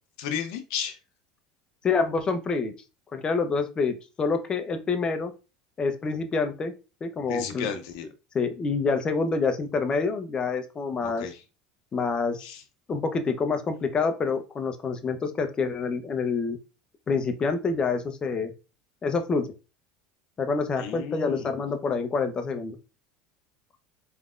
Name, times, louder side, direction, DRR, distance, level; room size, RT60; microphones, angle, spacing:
voice 1, 0.2-1.0 7.3-8.1 11.0-11.4 12.4-12.6 20.8-21.5, left 8 dB, 70° left, 7 dB, 0.7 m, -33 dB
voice 2, 1.8-2.7 3.1-5.3 5.8-6.7 7.0-7.7 8.3-11.3 11.9-12.5 12.9-16.6 17.1-18.5 19.0-19.5 20.4-22.8, left 4 dB, 30° left, 7 dB, 0.7 m, -27 dB
3.4 x 3.3 x 2.4 m, 0.31 s
hypercardioid pair, 85°, 3 cm